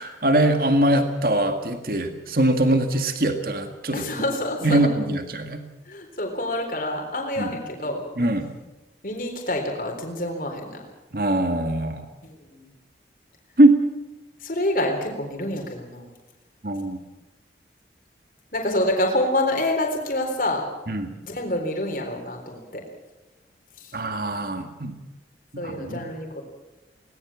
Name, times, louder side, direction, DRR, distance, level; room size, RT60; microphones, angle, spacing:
voice 1, 0.0-4.0 4.6-5.6 7.4-7.5 8.2-8.5 11.1-12.1 13.6-13.8 16.6-17.0 20.9-21.1 23.9-24.9 25.5-26.0, right 1 dB, 55° right, 6 dB, 2.0 m, -22 dB
voice 2, 3.9-4.9 5.9-8.0 9.0-10.8 12.2-12.7 14.4-16.1 18.5-20.7 21.2-22.8 23.8-24.0 25.6-26.4, left 1 dB, 50° left, 1 dB, 3.9 m, -27 dB
21.5 x 19.0 x 7.3 m, 1.1 s
head